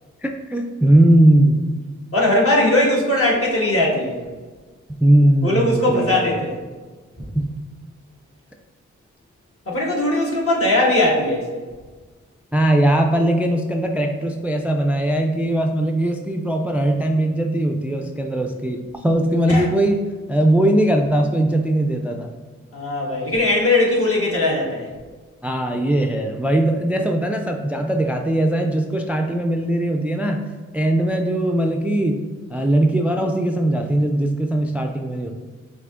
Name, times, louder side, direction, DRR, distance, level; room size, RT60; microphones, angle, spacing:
voice 1, 0.2-1.7 5.0-6.3 7.3-7.4 12.5-20.0 20.3-22.3 25.4-30.5 30.7-32.2 32.5-35.3, right 1 dB, 5° right, 3 dB, 0.3 m, -19 dB
voice 2, 2.1-4.2 5.4-6.6 7.2-7.3 9.7-11.6 19.5-19.7 22.7-24.9, left 1 dB, 50° left, -3 dB, 1.4 m, -19 dB
5.9 x 2.8 x 2.4 m, 1.3 s
cardioid pair, 45°, 30 cm